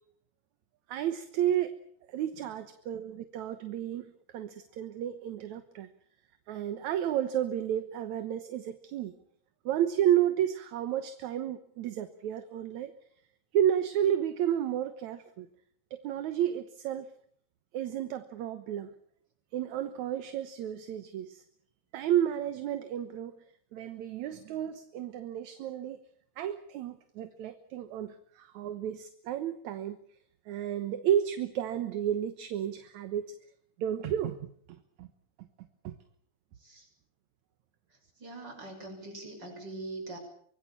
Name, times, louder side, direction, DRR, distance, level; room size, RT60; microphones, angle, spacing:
voice 1, 0.9-1.8 2.1-5.9 6.5-9.2 9.7-12.9 13.5-15.5 15.9-17.1 17.7-18.9 19.5-21.4 21.9-23.4 23.7-26.0 26.4-30.0 30.5-33.3 33.8-35.1 35.4-35.9, right 10 dB, 70° right, 10 dB, 2.4 m, -32 dB
voice 2, 38.2-40.2, right 2 dB, 30° right, 3 dB, 7.2 m, -42 dB
24.5 x 21.0 x 7.2 m, 0.64 s
omnidirectional pair, 3.6 m